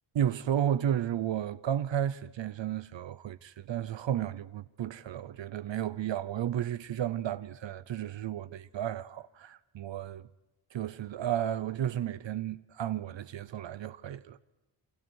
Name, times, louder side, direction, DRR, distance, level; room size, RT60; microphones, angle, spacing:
voice 1, 0.1-10.3 10.7-14.4, right 10 dB, 65° right, 0.6 m, -33 dB
29.0 x 24.5 x 4.6 m
wide cardioid pair, 160°, 49 cm